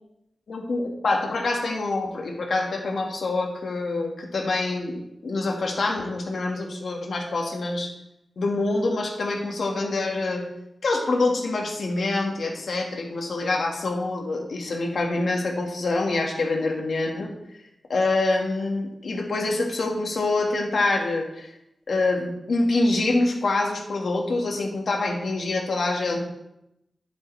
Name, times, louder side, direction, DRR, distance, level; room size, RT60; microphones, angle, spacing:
voice 1, 0.5-7.9 8.4-10.4 10.8-17.3 17.9-21.5 21.9-26.2, left 2 dB, 65° left, 1 dB, 2.1 m, -25 dB
10.5 x 8.6 x 3.5 m, 0.84 s
wide cardioid pair, 80°, 0 cm